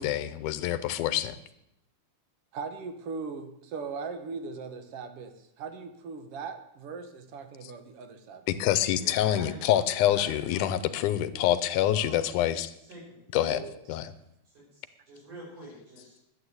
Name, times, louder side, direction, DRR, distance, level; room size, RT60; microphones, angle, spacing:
voice 1, 0.0-1.3 8.5-12.7 13.3-13.6 13.9-14.1, left 12 dB, 90° left, 14 dB, 2.3 m, -26 dB
voice 2, 2.5-8.5 13.5-13.7 14.0-14.1, right 5 dB, 60° right, 8 dB, 1.9 m, -39 dB
voice 3, 9.0-9.8 10.1-10.7 11.9-12.2 12.9-13.0 14.5-16.2, equal, 85° right, -4 dB, 6.9 m, -46 dB
11.5 x 8.9 x 8.0 m, 0.80 s
omnidirectional pair, 3.5 m